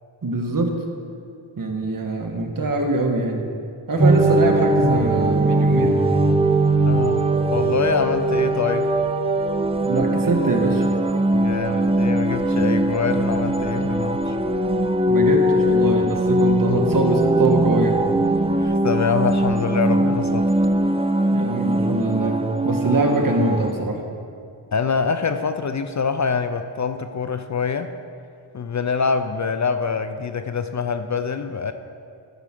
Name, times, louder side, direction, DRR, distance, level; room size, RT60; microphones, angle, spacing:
voice 1, 0.2-0.8 1.6-3.4 3.9-6.1 9.8-10.8 15.1-18.0 21.3-24.0, right 2 dB, 50° right, 2 dB, 1.3 m, -23 dB
sound 1, 4.0-23.7, right 1 dB, 15° right, 0.5 m, -20 dB
voice 2, 6.8-8.9 11.3-14.4 18.5-20.5 24.7-27.9 28.5-31.7, left 5 dB, 40° left, 9 dB, 0.4 m, -25 dB
14.0 x 4.8 x 5.9 m, 2.4 s
wide cardioid pair, 85°, 44 cm